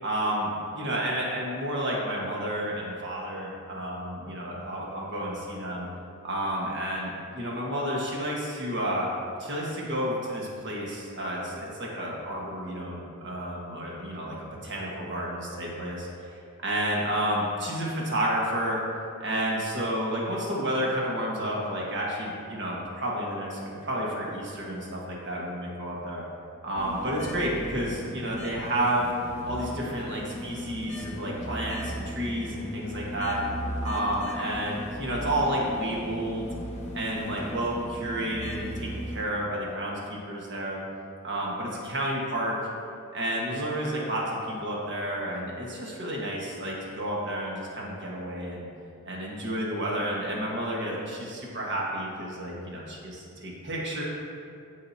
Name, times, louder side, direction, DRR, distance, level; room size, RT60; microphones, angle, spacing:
voice 1, 0.0-5.9 6.2-9.1 9.4-16.1 16.6-18.8 19.2-26.2 26.6-29.1 29.4-33.4 33.8-36.5 36.9-40.8 41.2-42.6 43.1-48.7 49.0-54.0, right 1 dB, 55° right, -3 dB, 1.5 m, -31 dB
sound 1, 26.8-39.2, equal, 30° left, 0.9 m, -37 dB
14.0 x 4.9 x 2.8 m, 2.5 s
head